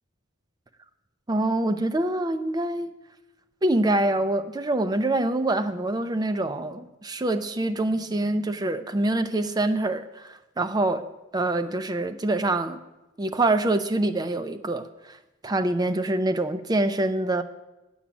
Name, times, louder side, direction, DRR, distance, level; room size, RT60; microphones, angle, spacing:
voice 1, 1.3-2.9 3.6-11.1 11.3-12.8 13.2-17.4, right 2 dB, 20° right, 0.4 m, -25 dB
8.8 x 7.1 x 7.1 m
head